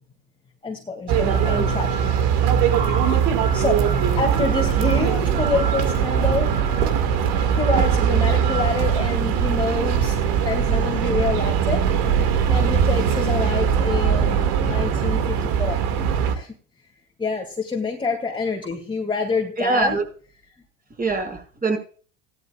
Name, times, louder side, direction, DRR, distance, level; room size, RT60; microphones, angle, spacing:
voice 1, 0.6-2.2 3.5-3.9 4.2-6.7 7.3-10.2 10.4-11.9 12.5-15.8 16.3-16.5 17.2-20.0, left 3 dB, 15° left, 2.4 m, -27 dB
sound 1, 1.1-16.4, right 7 dB, 65° right, 2.3 m, -20 dB
voice 2, 19.6-20.0 21.0-21.8, right 3 dB, 20° right, 5.9 m, -23 dB
17.0 x 12.0 x 2.4 m
supercardioid pair, 125°, 38 cm